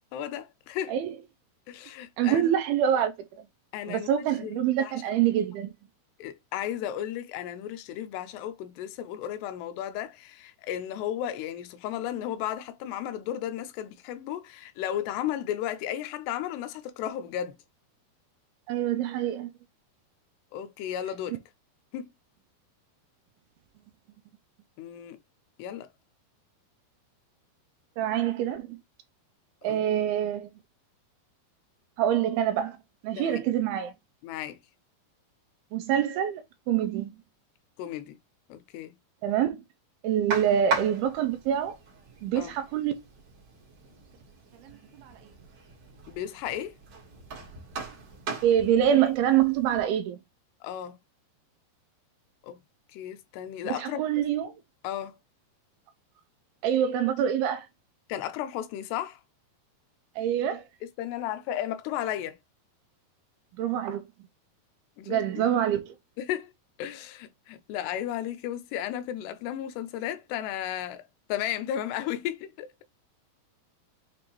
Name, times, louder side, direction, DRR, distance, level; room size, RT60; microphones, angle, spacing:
voice 1, 0.1-1.0 1.7-2.4 3.7-4.1 4.4-5.3 6.2-17.6 20.5-21.4 21.9-22.1 24.8-25.2 25.6-25.9 29.7-29.8 33.2-33.5 34.2-34.6 37.8-38.2 38.5-39.0 42.4-42.5 46.1-46.7 50.6-51.0 52.4-52.6 52.9-54.0 54.8-55.2 58.1-59.2 60.8-62.4 65.0-65.4 66.2-66.5 66.8-72.7, left 11 dB, 85° left, 2.7 m, -34 dB
voice 2, 2.2-3.1 3.9-5.7 18.7-19.5 28.0-28.8 29.6-30.5 32.0-32.8 33.0-33.9 35.7-37.2 39.2-39.6 40.0-41.8 42.2-42.9 44.6-44.7 45.0-45.2 48.4-50.2 53.6-54.5 56.6-57.7 60.2-60.7 63.6-64.0 65.1-66.0, right 10 dB, 80° right, 2.2 m, -25 dB
sound 1, 40.3-49.8, right 4 dB, 55° right, 2.1 m, -39 dB
6.8 x 2.5 x 3.0 m
omnidirectional pair, 4.7 m